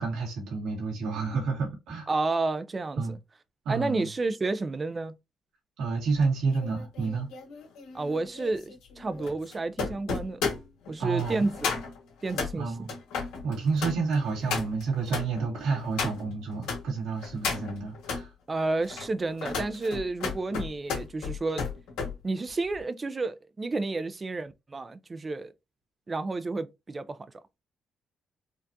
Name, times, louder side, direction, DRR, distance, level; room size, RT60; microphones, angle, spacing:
voice 1, 0.0-2.1 3.0-3.2 3.7-4.1 5.8-7.3 11.0-11.5 12.6-12.9 13.4-18.3, right 4 dB, 85° right, 1.8 m, -29 dB
voice 2, 2.1-3.2 3.7-5.1 7.9-10.4 10.9-11.8 12.2-12.7 18.5-21.6 22.2-25.5 26.1-27.2, right 3 dB, 30° right, 0.4 m, -30 dB
sound 1, 6.2-16.8 17.2-18.2 18.8-22.1 22.5-22.8, left 5 dB, 90° left, 1.8 m, -34 dB
4.5 x 2.4 x 2.7 m
cardioid pair, 90°, 0 cm